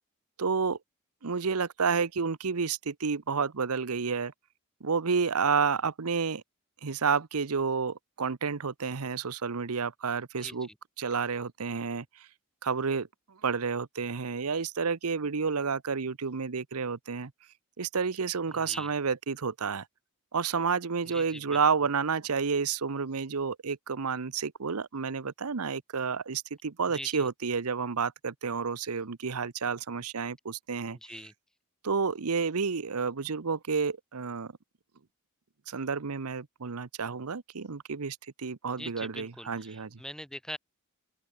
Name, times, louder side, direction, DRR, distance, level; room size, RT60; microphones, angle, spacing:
voice 1, 0.4-0.8 1.2-4.3 4.8-6.4 6.8-10.7 11.0-12.3 12.6-13.1 13.4-17.3 17.8-19.9 20.3-31.0 31.8-34.5 35.7-39.9, right 5 dB, 80° right, 0.9 m, -30 dB
voice 2, 10.4-10.8 18.5-18.9 21.0-21.6 26.9-27.3 30.8-31.3 38.8-40.6, left 1 dB, 5° left, 2.1 m, -43 dB
open air
head